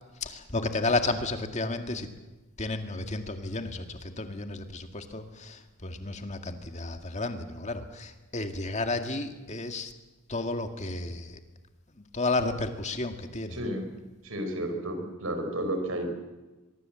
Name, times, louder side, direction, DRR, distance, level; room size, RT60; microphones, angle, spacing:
voice 1, 0.2-2.1 2.6-9.9 10.3-11.4 12.1-13.6, left 2 dB, 30° left, 6 dB, 2.0 m, -32 dB
voice 2, 13.5-13.9 14.2-16.1, right 1 dB, 70° right, 6 dB, 5.3 m, -32 dB
23.5 x 23.5 x 7.7 m, 1.1 s
head